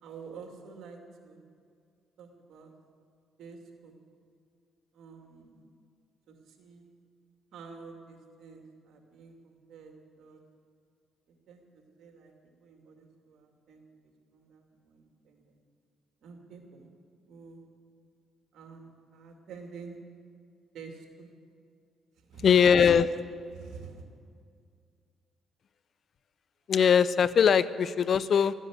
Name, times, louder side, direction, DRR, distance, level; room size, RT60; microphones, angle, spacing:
voice 1, 0.0-1.4 2.2-2.7 3.4-4.0 4.9-5.7 6.3-6.9 7.5-10.4 11.5-12.3 12.6-13.8 14.3-15.5 16.2-16.9 17.3-17.6 18.5-20.0 20.7-21.3 22.2-22.9 23.5-24.0, right 5 dB, 75° right, 2 dB, 2.5 m, -48 dB
voice 2, 22.4-23.1 26.7-28.5, left 7 dB, 55° left, 16 dB, 0.6 m, -21 dB
14.0 x 10.0 x 9.5 m, 2.2 s
cardioid pair, 90°, 0 cm